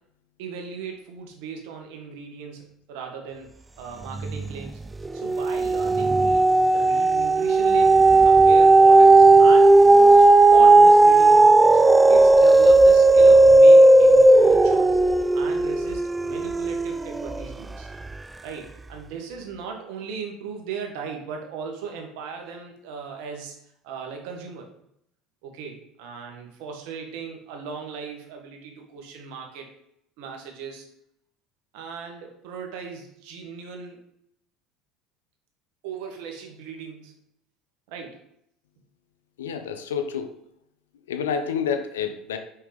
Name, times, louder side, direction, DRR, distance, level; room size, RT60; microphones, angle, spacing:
voice 1, 0.4-3.5 3.8-4.8 5.1-6.4 6.7-9.7 10.1-11.8 12.1-15.0 15.3-17.9 18.4-23.6 23.8-24.7 25.4-29.7 30.2-30.9 31.7-34.0 35.8-37.1 37.9-38.2, right 6 dB, 70° right, 2 dB, 1.8 m, -37 dB
sound 1, 4.1-4.7 5.0-17.5 18.1-18.2, right 2 dB, 15° right, 0.4 m, -15 dB
voice 2, 39.4-40.3 41.1-42.4, left 7 dB, 85° left, 7 dB, 0.8 m, -28 dB
5.5 x 5.5 x 5.3 m, 0.75 s
hypercardioid pair, 75°, 0 cm